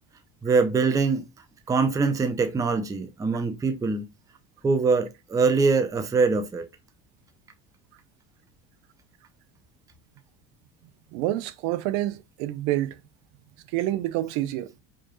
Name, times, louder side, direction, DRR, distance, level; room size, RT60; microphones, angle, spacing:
voice 1, 0.4-1.2 1.7-4.0 4.6-6.6, right 4 dB, 10° right, 0.4 m, -23 dB
voice 2, 11.1-13.0 13.7-14.7, right 15 dB, 90° right, 0.7 m, -28 dB
4.8 x 2.3 x 3.0 m
cardioid pair, 140°, 40 cm